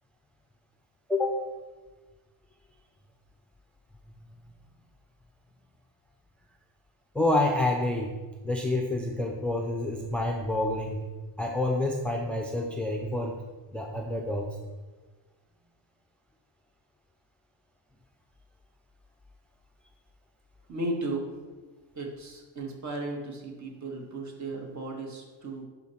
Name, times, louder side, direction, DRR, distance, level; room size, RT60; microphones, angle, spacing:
voice 1, 1.1-1.4 7.1-8.1 8.4-11.0 11.4-13.3 13.7-14.5, left 2 dB, 5° left, 1 dB, 0.6 m, -28 dB
voice 2, 20.7-21.3 22.0-25.6, right 2 dB, 40° right, 0 dB, 1.8 m, -35 dB
10.5 x 4.4 x 5.7 m, 1.3 s
cardioid pair, 150°, 46 cm